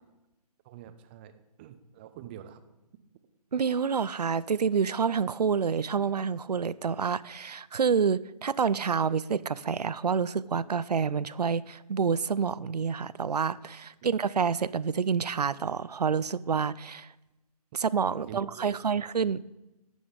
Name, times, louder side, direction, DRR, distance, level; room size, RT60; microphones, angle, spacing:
voice 1, 0.6-2.6 14.0-14.1 18.2-19.3, right 10 dB, 15° right, 0.4 m, -47 dB
voice 2, 3.5-17.1 17.7-19.4, right 6 dB, 85° right, 0.4 m, -28 dB
11.5 x 7.8 x 5.0 m
figure-of-eight pair, 140°, 20 cm